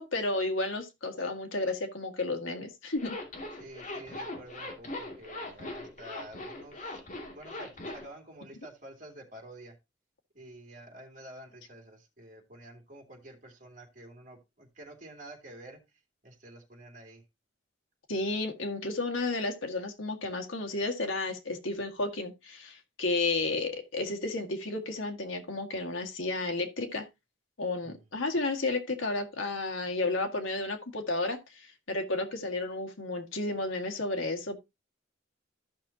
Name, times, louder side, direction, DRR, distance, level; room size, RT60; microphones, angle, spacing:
voice 1, 0.0-3.2 18.1-27.1 27.6-34.6, left 2 dB, 90° left, 1.8 m, -32 dB
Zipper (clothing), 3.0-8.1, left 2 dB, 40° left, 2.4 m, -40 dB
voice 2, 3.6-7.0 7.3-9.8 10.3-17.2 27.8-28.1, right 1 dB, 40° right, 2.8 m, -49 dB
14.0 x 6.0 x 2.8 m
head